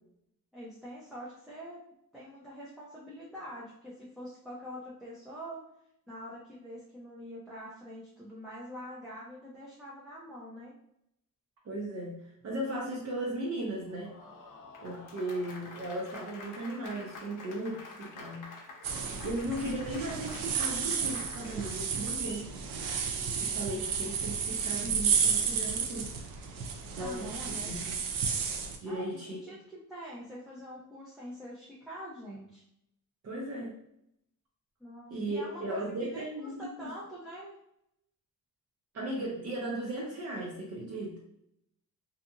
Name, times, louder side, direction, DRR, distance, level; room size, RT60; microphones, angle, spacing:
voice 1, 0.5-1.8 2.1-5.6 6.1-10.8 27.0-27.7 28.9-32.6 34.8-36.3 36.6-37.5, equal, ahead, -7 dB, 0.4 m, -45 dB
voice 2, 11.6-14.1 14.8-18.5 19.2-22.5 23.4-26.1 26.9-28.0 28.8-29.4 33.2-33.8 35.1-36.9 38.9-41.2, right 1 dB, 50° right, -4 dB, 0.7 m, -36 dB
Applause, 13.8-22.5, left 3 dB, 65° left, 0.6 m, -48 dB
sound 1, 18.8-28.8, right 6 dB, 85° right, 0.5 m, -32 dB
2.7 x 2.4 x 2.3 m, 0.77 s
cardioid pair, 150°, 33 cm